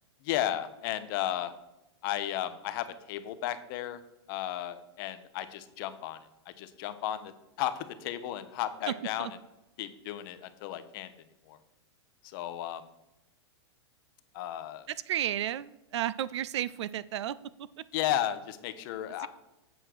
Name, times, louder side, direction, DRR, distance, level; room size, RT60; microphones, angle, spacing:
voice 1, 0.2-1.5 2.0-4.0 4.3-6.2 6.6-7.3 7.6-9.3 9.8-11.1 11.5-11.6 12.2-12.8 14.3-14.9 17.9-19.3, left 12 dB, 50° left, 11 dB, 0.9 m, -34 dB
voice 2, 14.9-17.4 17.8-17.9 19.2-19.3, right 11 dB, 75° right, 17 dB, 0.4 m, -32 dB
8.2 x 4.4 x 6.5 m, 0.94 s
hypercardioid pair, 130°, 15 cm